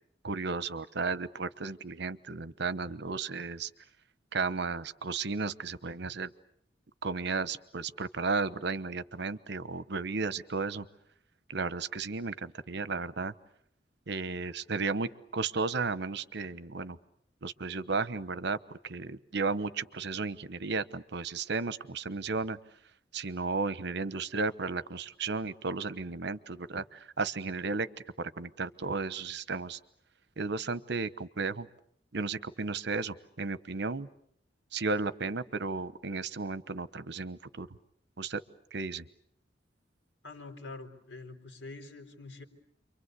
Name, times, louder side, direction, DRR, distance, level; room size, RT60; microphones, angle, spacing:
voice 1, 0.2-3.7 4.3-6.3 7.0-10.8 11.5-13.3 14.1-17.0 17.4-22.6 23.1-27.9 28.2-29.8 30.4-31.7 32.1-34.1 34.7-37.7 38.2-38.4 38.7-39.1, right 4 dB, 65° right, 15 dB, 1.0 m, -34 dB
voice 2, 40.2-42.4, left 3 dB, 80° left, 5 dB, 4.6 m, -45 dB
29.0 x 24.5 x 8.2 m, 0.70 s
head